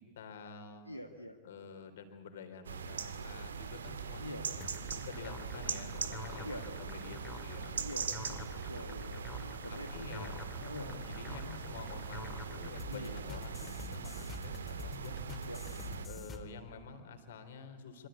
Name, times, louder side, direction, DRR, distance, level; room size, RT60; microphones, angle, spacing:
voice 1, 0.0-0.9 1.4-4.4 4.9-8.9 9.7-15.2 16.0-18.1, left 5 dB, 60° left, 7 dB, 3.8 m, -49 dB
voice 2, 0.9-1.4 4.2-4.5 6.4-6.8 7.8-10.4 10.7-10.9 12.9-13.3 15.5-15.6, equal, 90° left, 3 dB, 1.7 m, -46 dB
sound 1, 2.6-16.1, right 6 dB, 70° right, 1.8 m, -41 dB
sound 2, 4.5-16.4, left 2 dB, 20° left, 3.5 m, -47 dB
26.5 x 26.0 x 8.4 m, 1.5 s
figure-of-eight pair, 90°, 0 cm